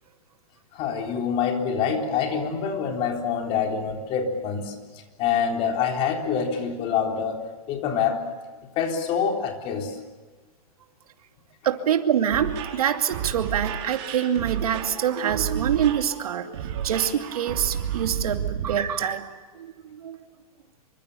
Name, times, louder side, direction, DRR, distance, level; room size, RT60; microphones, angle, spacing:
voice 1, 0.7-4.7 5.2-8.2 8.8-10.0, left 7 dB, 30° left, 3 dB, 3.8 m, -26 dB
voice 2, 11.6-19.3 19.5-20.2, right 9 dB, 70° right, 6 dB, 2.6 m, -25 dB
sound 1, 12.3-18.7, right 9 dB, 45° right, 4.5 m, -32 dB
27.0 x 24.5 x 7.0 m, 1.4 s
hypercardioid pair, 155°, 19 cm